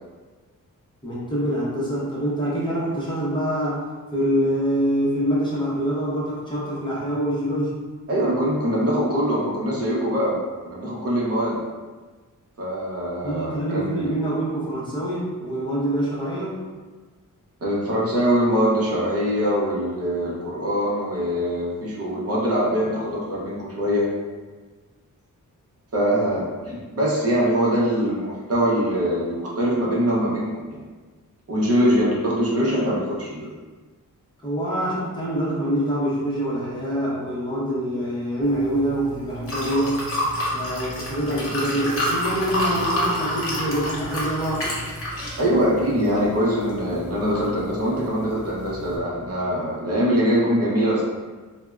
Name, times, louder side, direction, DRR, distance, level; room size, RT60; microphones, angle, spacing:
voice 1, 1.0-3.9 4.1-7.8 13.2-16.6 34.4-40.0 40.5-44.7, equal, 15° left, -8 dB, 0.6 m, -25 dB
voice 2, 8.1-11.6 12.6-14.1 17.6-24.1 25.9-30.8 31.5-33.5 45.4-51.0, equal, 45° right, -5 dB, 0.7 m, -23 dB
Liquid, 38.4-49.0, equal, 45° left, 0.8 m, -29 dB
3.3 x 2.0 x 2.3 m, 1.4 s
wide cardioid pair, 135°, 33 cm